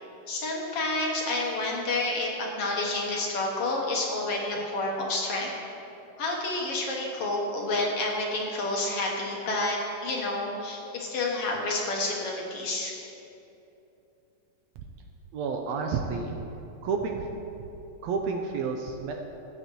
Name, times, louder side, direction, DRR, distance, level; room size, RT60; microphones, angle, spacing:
voice 1, 0.3-5.5 6.2-12.9, left 2 dB, 60° left, -2 dB, 1.9 m, -29 dB
voice 2, 15.3-16.4 16.8-17.3 18.0-19.1, right 5 dB, 75° right, 3 dB, 1.8 m, -30 dB
19.5 x 7.9 x 3.1 m, 2.9 s
omnidirectional pair, 3.4 m